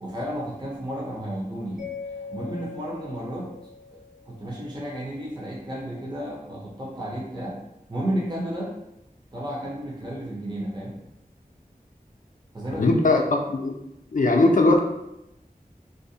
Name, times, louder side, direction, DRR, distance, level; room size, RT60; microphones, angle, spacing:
voice 1, 0.0-1.9 2.3-3.5 4.3-7.6 7.9-8.7 9.3-11.0 12.5-13.2, right 1 dB, 30° right, -5 dB, 0.6 m, -32 dB
Mallet percussion, 1.8-4.8, left 5 dB, 60° right, 1.0 m, -41 dB
voice 2, 12.8-13.7 14.1-14.8, left 2 dB, 60° left, 2 dB, 0.4 m, -19 dB
2.6 x 2.0 x 2.7 m, 0.88 s
wide cardioid pair, 45°, 15 cm